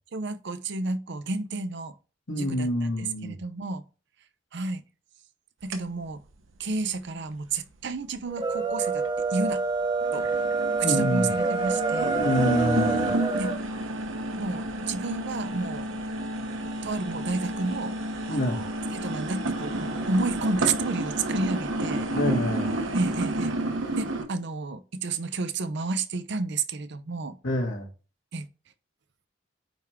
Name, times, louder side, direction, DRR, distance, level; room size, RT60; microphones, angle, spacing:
voice 1, 0.1-1.9 2.3-3.8 4.5-4.8 5.6-6.2 6.6-9.0 9.3-9.6 10.1-10.3 10.8-12.2 13.4-13.6 14.4-15.9 16.8-17.9 18.3-22.1 22.9-23.5 24.0-27.4 28.3-28.5, right 3 dB, 65° right, 0.7 m, -31 dB
voice 2, 2.3-3.4 10.8-11.3 12.1-13.2 18.3-18.6 22.1-22.7 27.4-27.9, left 1 dB, 90° left, 2.3 m, -27 dB
sound 1, 5.7-5.8 6.3-6.4 7.1-7.2 8.4-8.5 8.9-9.5 9.8-24.3, right 1 dB, 85° right, 1.0 m, -30 dB
sound 2, 8.3-13.6, right 3 dB, 25° right, 0.7 m, -27 dB
9.1 x 3.6 x 3.5 m
head